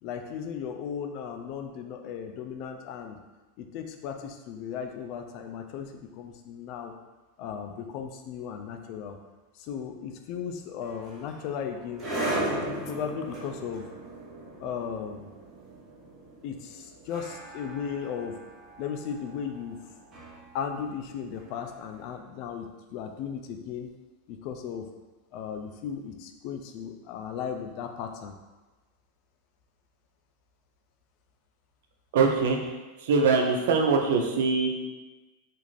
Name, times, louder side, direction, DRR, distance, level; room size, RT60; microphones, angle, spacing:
voice 1, 0.0-3.2 3.6-6.9 7.4-9.2 9.6-12.1 12.9-13.8 14.6-15.3 16.4-18.4 18.8-19.8 20.5-23.9 24.3-24.9 25.3-28.3, left 7 dB, 50° left, 5 dB, 0.3 m, -36 dB
sound 1, 10.8-21.9, right 1 dB, 25° right, 0.8 m, -37 dB
voice 2, 32.1-32.6 33.0-34.9, right 4 dB, 75° right, 2 dB, 0.4 m, -23 dB
2.5 x 2.4 x 3.1 m, 1.2 s
supercardioid pair, 140°, 0 cm